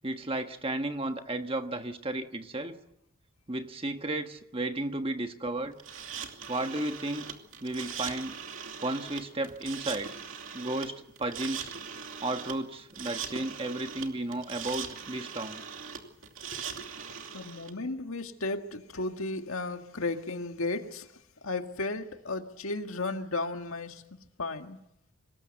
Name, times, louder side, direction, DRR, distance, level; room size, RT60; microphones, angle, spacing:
voice 1, 0.0-2.8 3.5-5.8 6.5-7.3 7.6-8.3 8.8-10.1 10.5-11.7 12.2-15.6, right 2 dB, 25° right, 7 dB, 1.4 m, -33 dB
sound 1, 5.8-17.7, right 7 dB, 65° right, 2.7 m, -40 dB
voice 2, 16.4-16.9 17.3-21.1 21.4-24.8, left 2 dB, 75° left, 6 dB, 1.8 m, -35 dB
25.5 x 20.0 x 8.1 m, 0.82 s
head